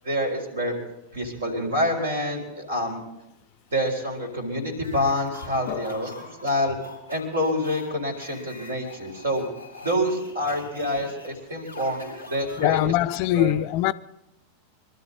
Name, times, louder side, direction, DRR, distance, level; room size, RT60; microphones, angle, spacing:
voice 1, 0.0-0.8 1.1-3.0 3.7-6.8 7.1-9.5 9.8-12.8 13.3-13.5, equal, 65° right, 4.1 m, -27 dB
sound 1, 4.8-13.0, left 3 dB, 90° right, 5.3 m, -44 dB
voice 2, 12.6-13.9, left 14 dB, 45° left, 0.5 m, -22 dB
24.0 x 13.0 x 4.2 m
figure-of-eight pair, 90°, 0 cm